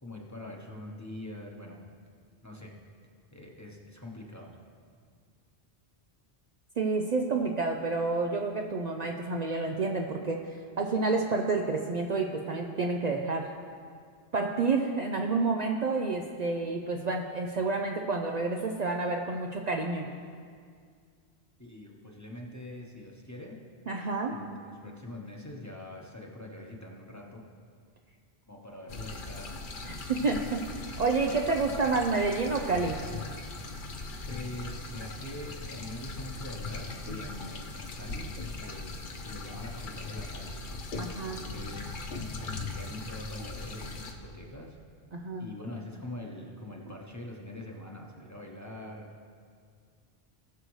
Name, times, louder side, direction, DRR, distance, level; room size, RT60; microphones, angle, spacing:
voice 1, 0.0-1.8 2.4-2.7 3.3-4.5 21.6-23.6 24.3-27.4 28.5-29.6 34.3-40.6 41.2-42.0 42.4-44.8 45.4-49.1, left 1 dB, 15° left, -1 dB, 1.1 m, -43 dB
voice 2, 6.8-10.4 10.8-13.5 14.3-20.1 23.9-24.4 29.9-30.6 31.0-32.9 41.0-41.6 45.1-45.5, right 3 dB, 50° right, 2 dB, 0.6 m, -29 dB
sound 1, 28.9-44.1, left 3 dB, 55° left, 0.9 m, -39 dB
18.5 x 6.7 x 3.2 m, 2.1 s
omnidirectional pair, 1.0 m